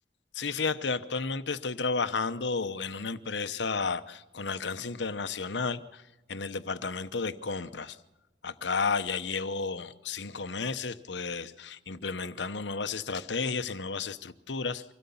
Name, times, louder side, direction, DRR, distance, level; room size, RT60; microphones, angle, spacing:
voice 1, 0.3-6.0 6.3-8.0 8.4-14.9, left 4 dB, 85° left, 11 dB, 1.0 m, -32 dB
25.0 x 17.0 x 7.1 m, 1.0 s
head